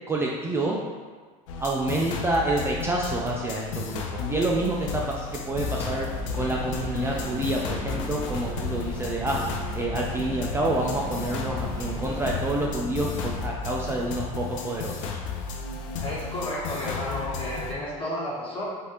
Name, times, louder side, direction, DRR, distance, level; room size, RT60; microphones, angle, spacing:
voice 1, 0.1-0.8 1.6-6.1 6.3-9.4 9.7-15.0, right 1 dB, 15° right, -3 dB, 0.3 m, -28 dB
sound 1, 1.5-17.7, left 4 dB, 80° left, 0.4 m, -34 dB
sound 2, 5.5-13.5, right 2 dB, 70° right, 0.5 m, -37 dB
sound 3, 6.2-12.4, equal, 10° left, 0.9 m, -42 dB
voice 2, 16.0-18.6, left 1 dB, 35° left, -8 dB, 1.5 m, -32 dB
3.1 x 2.5 x 2.9 m, 1.4 s
hypercardioid pair, 85°, 16 cm